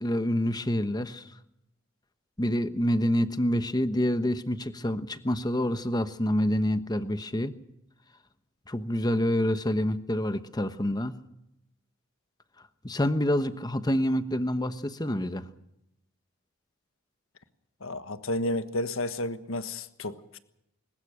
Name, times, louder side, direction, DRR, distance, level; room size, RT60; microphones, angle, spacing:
voice 1, 0.0-1.2 2.4-7.5 8.7-11.1 12.8-15.4, equal, 20° left, 11 dB, 1.1 m, -27 dB
voice 2, 17.8-20.4, left 1 dB, 75° left, 11 dB, 1.5 m, -32 dB
21.5 x 19.5 x 6.6 m, 0.80 s
head